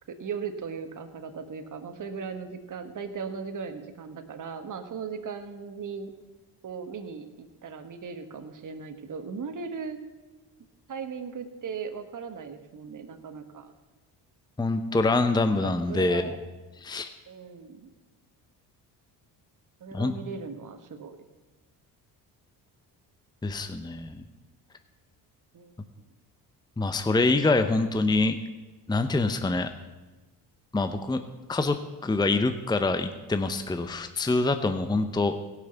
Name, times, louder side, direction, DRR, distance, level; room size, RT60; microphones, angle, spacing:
voice 1, 0.1-6.1 6.6-10.0 10.9-13.7 15.6-16.4 17.3-17.9 19.8-21.2 25.5-25.7, right 5 dB, 45° right, 7 dB, 1.5 m, -38 dB
voice 2, 14.6-16.3 16.8-17.1 19.9-20.1 23.4-24.2 26.8-28.4 28.9-29.7 30.7-31.2 31.5-31.8 32.0-35.3, left 3 dB, 10° left, 9 dB, 0.8 m, -25 dB
16.5 x 6.1 x 7.0 m, 1.2 s
supercardioid pair, 70°, 44 cm